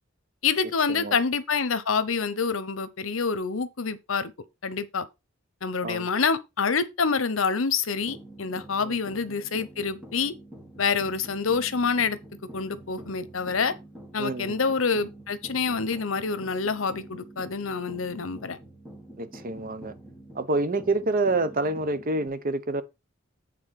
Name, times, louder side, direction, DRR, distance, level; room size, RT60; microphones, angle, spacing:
voice 1, 0.4-4.3 4.6-5.1 5.6-10.3 10.8-12.2 12.5-13.7 14.1-18.6, left 5 dB, 75° left, 0.9 m, -27 dB
sound 1, 7.9-22.3, right 1 dB, 5° right, 2.4 m, -46 dB
voice 2, 14.2-14.6 19.2-19.9 20.3-22.8, right 2 dB, 45° right, 0.9 m, -27 dB
8.7 x 3.9 x 5.9 m
head